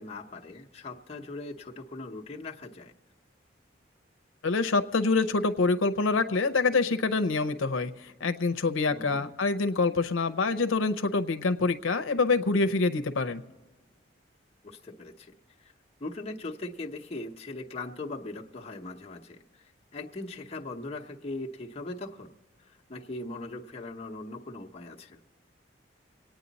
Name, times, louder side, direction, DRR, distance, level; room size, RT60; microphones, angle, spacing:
voice 1, 0.0-2.9 8.9-9.2 14.6-15.3 15.6-15.7 16.0-22.3 22.6-25.2, left 2 dB, 30° left, -1 dB, 0.8 m, -40 dB
voice 2, 4.4-7.9 8.2-13.4, left 3 dB, 90° left, 9 dB, 0.6 m, -26 dB
25.5 x 9.2 x 4.1 m, 1.3 s
head